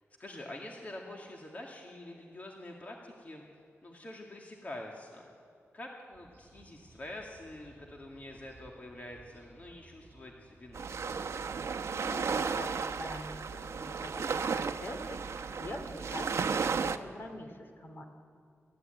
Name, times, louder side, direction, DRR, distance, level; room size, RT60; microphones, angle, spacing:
voice 1, 0.2-3.4 3.8-5.2 5.7-10.9, left 1 dB, 30° left, 0 dB, 2.1 m, -46 dB
sound 1, 6.1-11.2, right 2 dB, 40° right, 6.0 m, -59 dB
sound 2, 10.7-17.0, right 5 dB, 70° right, 0.9 m, -34 dB
voice 2, 11.9-18.0, left 1 dB, 45° left, 5 dB, 2.5 m, -44 dB
29.5 x 14.5 x 9.1 m, 2.4 s
wide cardioid pair, 160°, 5 cm